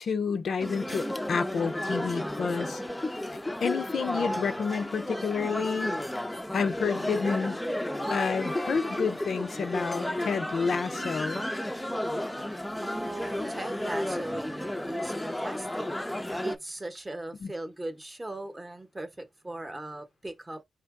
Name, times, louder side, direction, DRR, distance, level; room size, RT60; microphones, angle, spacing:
voice 1, 0.0-2.8 3.6-6.0 6.5-7.6 8.1-11.4 17.4-17.5, left 5 dB, 60° left, 0.4 m, -29 dB
sound 1, 0.6-16.6, left 1 dB, 5° left, 0.5 m, -33 dB
voice 2, 12.8-15.9 16.4-20.6, right 1 dB, 15° right, 0.8 m, -38 dB
4.4 x 2.8 x 3.5 m
wide cardioid pair, 125°, 0 cm